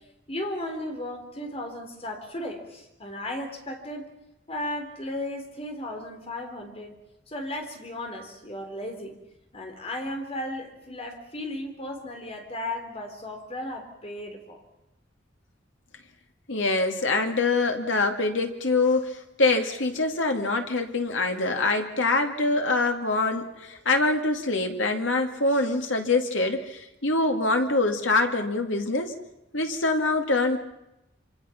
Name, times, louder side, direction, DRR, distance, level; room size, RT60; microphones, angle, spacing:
voice 1, 0.0-4.1 4.5-7.0 7.3-9.2 9.5-14.6, left 1 dB, 35° left, 4 dB, 3.7 m, -35 dB
voice 2, 16.5-29.1 29.5-30.6, left 3 dB, 85° left, 4 dB, 2.3 m, -24 dB
26.5 x 26.0 x 5.9 m, 0.91 s
head